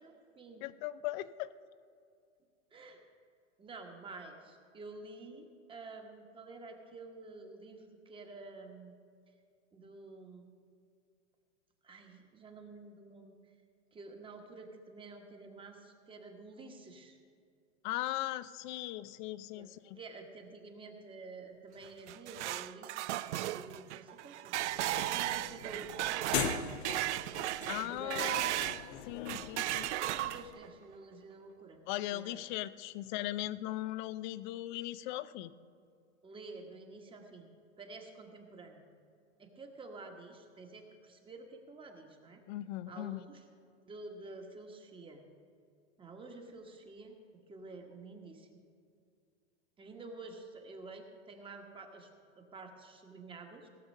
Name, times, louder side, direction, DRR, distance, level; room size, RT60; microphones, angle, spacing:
voice 1, 0.0-0.6 2.7-3.0 3.6-9.0 9.7-10.5 11.8-13.3 13.9-17.2 19.5-19.7 19.9-24.6 25.1-27.0 27.7-28.4 29.9-31.8 32.1-32.4 36.2-37.5 37.8-38.9 39.4-42.4 42.9-43.4 43.8-45.2 46.0-47.2 47.5-48.6 49.8-52.1 52.4-53.7, right 3 dB, 15° right, 4 dB, 1.3 m, -50 dB
voice 2, 0.6-1.5 17.8-20.0 27.7-28.4 29.1-29.9 31.9-35.5 42.5-43.3, left 15 dB, 45° left, 16 dB, 0.5 m, -38 dB
sound 1, 21.8-28.9 29.3-30.7, right 15 dB, 75° right, 0.5 m, -35 dB
sound 2, 24.6-30.5, left 8 dB, 60° left, 0.9 m, -41 dB
17.5 x 6.7 x 5.4 m, 2.3 s
hypercardioid pair, 130°, 35 cm